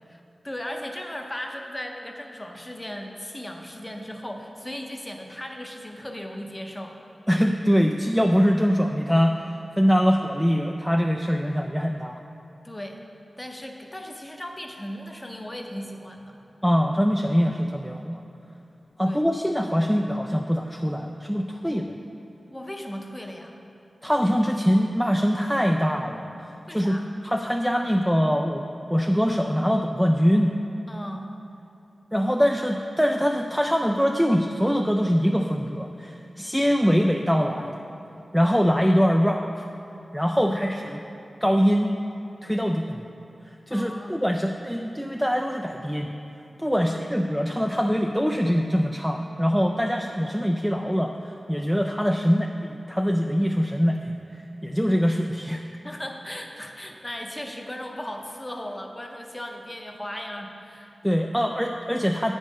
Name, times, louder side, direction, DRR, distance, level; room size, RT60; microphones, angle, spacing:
voice 1, 0.0-7.0 12.6-13.0 13.4-16.4 19.1-19.2 21.6-21.8 22.5-23.6 26.7-27.0 30.9-31.3 40.3-41.0 43.7-44.2 46.7-47.1 55.8-61.0, left 1 dB, 15° left, 2 dB, 0.7 m, -37 dB
voice 2, 7.3-9.4 9.8-12.2 16.6-18.2 19.0-21.9 24.0-27.0 27.2-30.5 32.1-37.8 38.3-39.5 40.1-41.0 41.4-41.9 42.4-43.0 43.7-46.1 46.6-55.6 61.0-62.4, equal, ahead, 2 dB, 0.3 m, -23 dB
8.4 x 5.5 x 5.2 m, 2.8 s
wide cardioid pair, 105°, 0 cm